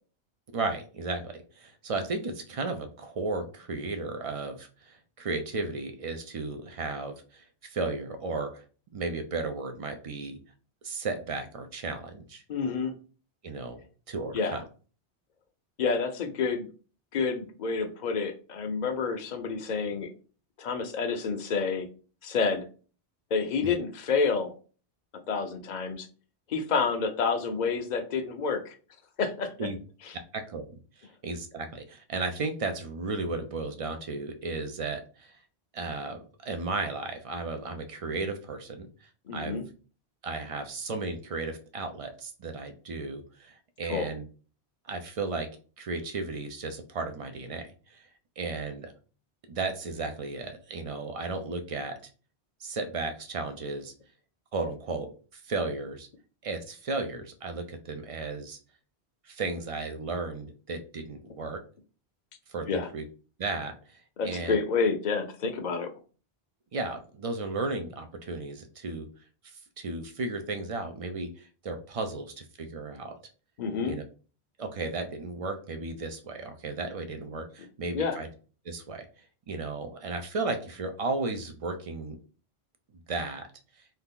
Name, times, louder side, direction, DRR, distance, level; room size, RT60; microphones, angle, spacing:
voice 1, 0.5-8.6 8.9-10.4 10.8-12.4 13.4-13.8 14.1-14.6 23.6-23.7 29.6-29.8 30.3-30.6 31.2-35.3 35.7-39.7 40.2-44.2 44.9-45.5 45.8-48.0 48.4-48.9 49.5-51.9 52.6-53.9 54.5-56.1 56.4-58.6 59.3-61.6 62.5-63.1 63.4-64.6 66.7-69.1 69.8-73.2 73.8-74.0 74.6-78.3 78.6-79.0 79.5-82.2 83.1-83.5, right 3 dB, 45° right, 6 dB, 0.4 m, -34 dB
voice 2, 12.5-12.9 14.3-14.6 15.8-16.7 17.1-20.1 20.6-21.9 22.2-22.6 23.3-24.5 25.3-26.1 26.5-28.8 29.2-29.5 39.3-39.6 43.9-44.1 62.7-62.9 64.2-65.9 73.6-74.0 77.9-78.2, left 5 dB, 50° left, 6 dB, 0.6 m, -29 dB
2.8 x 2.4 x 3.6 m, 0.37 s
omnidirectional pair, 1.1 m